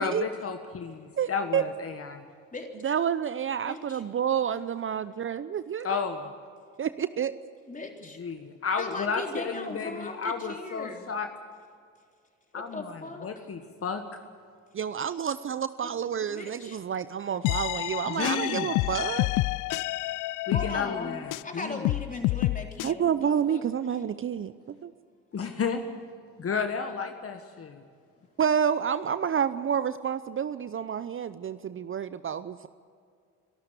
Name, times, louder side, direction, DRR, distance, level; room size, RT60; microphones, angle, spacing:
voice 1, 0.0-2.2 5.8-6.3 8.2-11.3 12.5-14.0 18.1-18.7 20.5-21.9 25.3-25.8 26.4-27.8, left 5 dB, 40° left, 6 dB, 1.6 m, -32 dB
voice 2, 1.2-1.6 2.8-5.9 6.8-7.3 14.7-19.3 22.8-24.5 24.8-24.9 28.4-32.7, right 8 dB, 35° right, 14 dB, 0.7 m, -29 dB
voice 3, 3.6-4.0 7.7-8.2 8.8-11.1 12.5-13.3 15.8-15.9 16.3-16.8 18.2-18.6 18.8-18.9 20.5-21.2 21.4-23.9, left 2 dB, 20° left, 2 dB, 3.9 m, -38 dB
sound 1, 17.4-21.5 21.8-22.9, left 20 dB, 60° left, 0.5 m, -29 dB
25.5 x 12.5 x 8.4 m, 2.2 s
hypercardioid pair, 55°, 35 cm